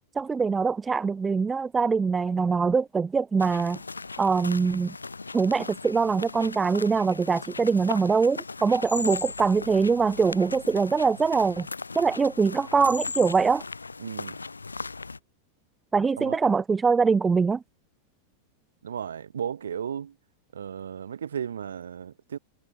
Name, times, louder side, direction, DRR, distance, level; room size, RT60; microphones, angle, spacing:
voice 1, 0.2-3.8 4.2-4.9 5.3-11.7 11.9-13.6 15.9-17.6, right 5 dB, 15° right, 0.5 m, -23 dB
sound 1, 3.4-15.2, left 4 dB, 80° left, 3.7 m, -38 dB
voice 2, 14.0-14.4 16.2-16.4 18.8-20.1 20.5-22.4, right 8 dB, 65° right, 2.4 m, -34 dB
figure-of-eight pair, 90°, 0 cm